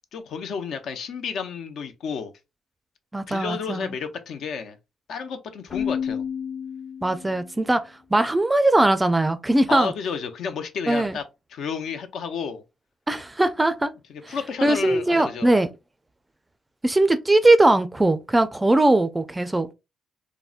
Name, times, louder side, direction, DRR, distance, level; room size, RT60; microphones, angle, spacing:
voice 1, 0.1-2.3 3.3-4.8 5.1-6.2 9.7-11.2 11.5-12.6 14.1-15.5, left 6 dB, 70° left, 0.5 m, -31 dB
voice 2, 3.1-3.9 7.0-9.9 10.9-11.2 13.1-13.9 14.3-14.4 14.6-15.7 16.8-19.7, right 2 dB, 15° right, 0.4 m, -20 dB
Keyboard (musical), 5.7-7.5, left 7 dB, 45° left, 0.8 m, -30 dB
3.6 x 2.1 x 2.4 m
cardioid pair, 90°, 0 cm